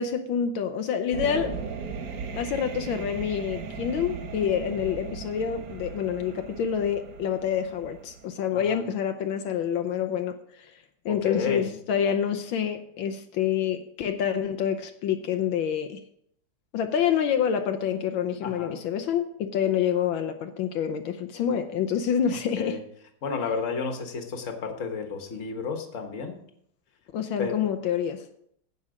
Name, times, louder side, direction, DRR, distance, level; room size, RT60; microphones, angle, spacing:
voice 1, 0.0-1.6 2.3-16.0 16.7-22.8 27.1-28.3, left 8 dB, 80° left, 7 dB, 1.5 m, -27 dB
sound 1, 1.1-8.3, right 5 dB, 55° right, 1.3 m, -37 dB
voice 2, 8.5-8.8 11.1-11.7 18.4-18.8 22.6-22.8 23.2-26.3 27.4-27.6, left 5 dB, 40° left, 4 dB, 1.7 m, -31 dB
16.5 x 5.5 x 5.0 m, 0.69 s
omnidirectional pair, 2.2 m